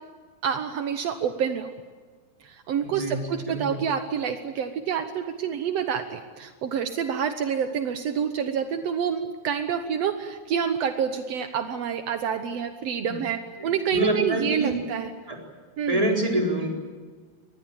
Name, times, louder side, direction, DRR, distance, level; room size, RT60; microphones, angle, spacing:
voice 1, 0.4-1.7 2.4-15.1 15.8-16.1, right 7 dB, 80° right, 8 dB, 1.4 m, -28 dB
voice 2, 2.8-3.8 13.0-13.2 13.6-14.8 15.3-15.4 15.9-16.7, right 1 dB, 10° right, 1 dB, 3.8 m, -27 dB
24.5 x 19.5 x 8.7 m, 1.5 s
omnidirectional pair, 4.5 m